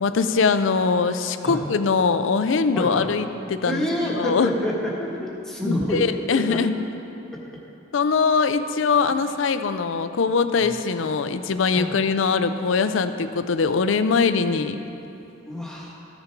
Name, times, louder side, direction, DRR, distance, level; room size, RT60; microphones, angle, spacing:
voice 1, 0.0-3.9 4.1-4.5 5.6-6.8 7.9-14.8, left 5 dB, 80° left, 11 dB, 0.5 m, -22 dB
voice 2, 2.7-3.1 3.6-6.6 7.3-7.4 11.7-12.0 15.4-16.0, equal, 5° left, -4 dB, 1.4 m, -27 dB
14.0 x 6.7 x 4.6 m, 2.8 s
head